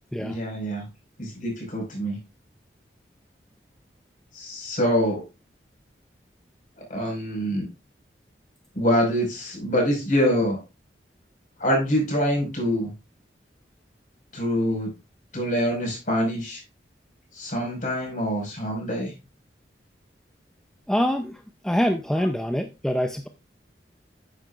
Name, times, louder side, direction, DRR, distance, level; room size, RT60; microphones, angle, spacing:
voice 1, 0.2-0.8 1.2-2.2 4.3-5.2 6.9-7.7 8.7-10.6 11.6-12.9 14.3-14.9 15.3-16.6 17.3-19.1, equal, 45° left, 0 dB, 5.0 m, -25 dB
voice 2, 20.9-23.3, equal, 5° left, 6 dB, 0.5 m, -25 dB
10.5 x 9.2 x 2.4 m, 0.27 s
head